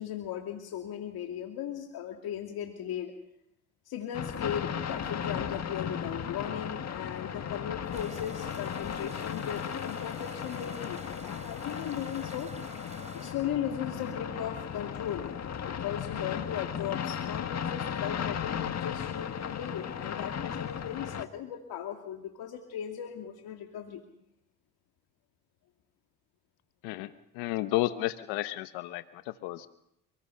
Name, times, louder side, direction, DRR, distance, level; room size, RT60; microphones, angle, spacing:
voice 1, 0.0-3.1 3.9-12.6 13.1-24.0, left 9 dB, 65° left, 2 dB, 2.5 m, -37 dB
sound 1, 4.1-21.2, left 8 dB, 45° left, 1.7 m, -36 dB
sound 2, 7.9-13.3, right 3 dB, 15° right, 3.1 m, -49 dB
voice 2, 26.8-29.7, left 16 dB, 85° left, 11 dB, 1.1 m, -32 dB
30.0 x 20.0 x 5.7 m, 0.78 s
supercardioid pair, 80°, 38 cm